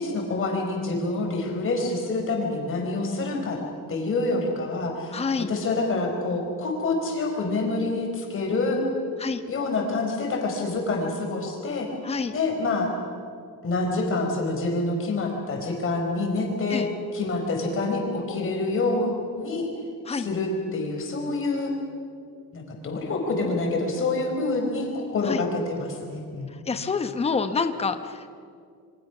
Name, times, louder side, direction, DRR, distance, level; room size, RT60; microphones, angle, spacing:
voice 1, 0.0-3.6 3.9-8.8 9.5-11.9 12.3-13.0 13.6-16.9 17.1-19.7 20.1-21.7 22.5-26.6, left 3 dB, 35° left, 1 dB, 4.8 m, -27 dB
voice 2, 5.1-5.5 9.2-9.4 12.0-12.3 16.7-16.9 20.1-20.3 25.2-25.4 26.7-28.3, left 4 dB, 15° left, 8 dB, 0.9 m, -27 dB
27.5 x 24.5 x 6.1 m, 2.3 s
cardioid pair, 180°, 36 cm